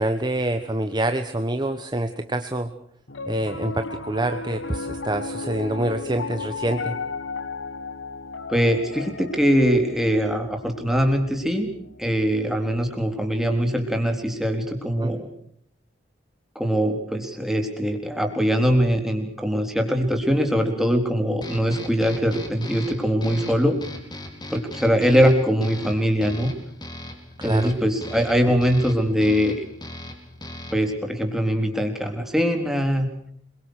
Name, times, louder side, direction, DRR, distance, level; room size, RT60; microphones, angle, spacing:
voice 1, 0.0-2.7 3.3-7.0 15.0-15.1 27.4-27.7 28.5-28.6, right 1 dB, 25° right, 8 dB, 1.3 m, -26 dB
Piano, 3.1-13.4, left 3 dB, 75° left, 1.6 m, -35 dB
voice 2, 8.5-11.7 12.0-15.3 16.6-23.8 24.5-26.5 27.4-29.6 30.7-33.1, equal, ahead, 4 dB, 3.8 m, -22 dB
sound 1, 21.4-31.0, left 1 dB, 20° left, 4.5 m, -38 dB
27.5 x 23.0 x 6.6 m, 0.67 s
head